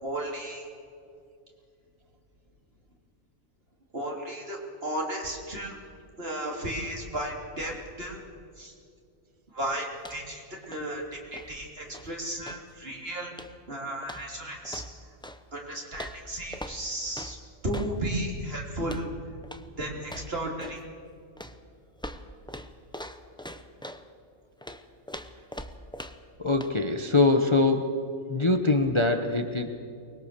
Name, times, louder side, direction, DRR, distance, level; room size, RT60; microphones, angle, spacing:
voice 1, 0.0-0.7 3.9-5.8 6.2-8.2 8.6-8.7 9.5-13.3 13.7-14.8 15.5-17.4 17.6-19.1 19.8-20.8, right 1 dB, 50° right, 0 dB, 3.5 m, -34 dB
sound 1, 9.9-10.4 10.6-12.7 13.3-13.7 14.0-15.4 15.9-18.0 18.8-19.1 19.4-19.7 20.0-20.9 21.4-24.1 24.6-26.3 26.6-26.8, equal, 5° left, 0.7 m, -42 dB
voice 2, 26.4-28.0 28.3-29.7, left 3 dB, 25° left, 6 dB, 0.9 m, -23 dB
24.0 x 21.0 x 6.8 m, 2.5 s
omnidirectional pair, 1.3 m